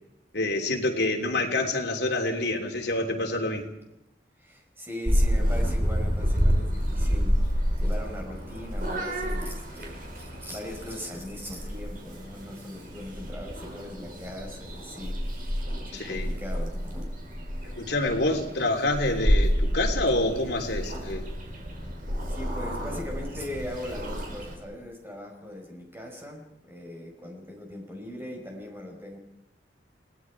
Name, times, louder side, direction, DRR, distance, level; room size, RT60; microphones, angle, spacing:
voice 1, 0.3-3.7 15.9-16.3 17.6-21.3, left 2 dB, 65° left, 1 dB, 3.3 m, -27 dB
voice 2, 4.4-7.4 7.8-17.4 18.2-18.5 22.3-29.2, left 1 dB, 15° right, 1 dB, 5.0 m, -40 dB
Purr / Meow, 5.1-24.6, equal, 50° right, 5.2 m, -29 dB
29.5 x 19.5 x 4.8 m, 0.88 s
head